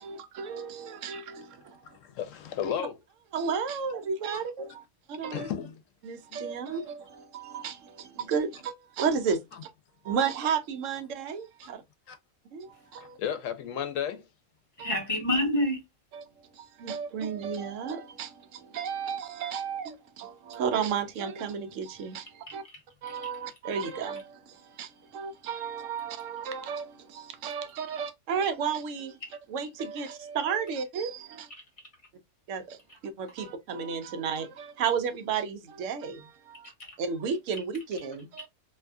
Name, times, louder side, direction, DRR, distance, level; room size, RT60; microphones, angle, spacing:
voice 1, 0.0-2.0 3.3-5.5 6.0-9.7 10.0-11.8 12.5-13.2 14.8-14.9 16.1-22.6 23.0-29.2 29.5-31.5 32.5-32.8 33.0-36.7 37.0-38.5, right 6 dB, 80° right, 0.9 m, -33 dB
voice 2, 1.8-3.0 4.3-4.4 5.3-5.7 6.3-6.8 11.6-11.7 12.1-12.2 12.9-14.3, left 9 dB, 85° left, 0.9 m, -34 dB
voice 3, 14.8-15.8 22.5-23.1 36.6-37.0, left 1 dB, 30° left, 0.9 m, -29 dB
2.7 x 2.5 x 2.2 m
omnidirectional pair, 1.3 m